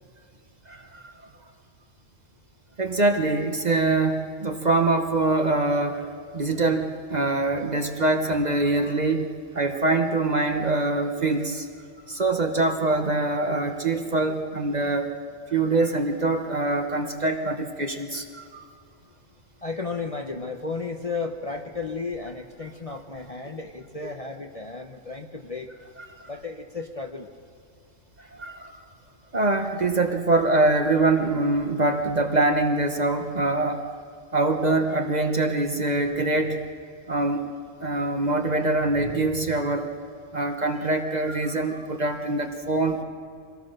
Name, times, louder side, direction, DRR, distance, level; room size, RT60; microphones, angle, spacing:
voice 1, 0.7-1.1 2.8-6.1 6.3-9.3 9.5-11.7 12.1-15.1 15.5-18.6 24.0-24.1 26.2-26.3 28.4-28.8 29.3-33.8 34.3-36.6 37.1-37.4 37.8-39.9 40.3-43.0, right 2 dB, 35° right, 5 dB, 1.1 m, -24 dB
voice 2, 19.6-25.7 26.2-27.3, left 4 dB, 30° left, 3 dB, 0.8 m, -33 dB
24.5 x 17.5 x 6.6 m, 2.2 s
omnidirectional pair, 1.4 m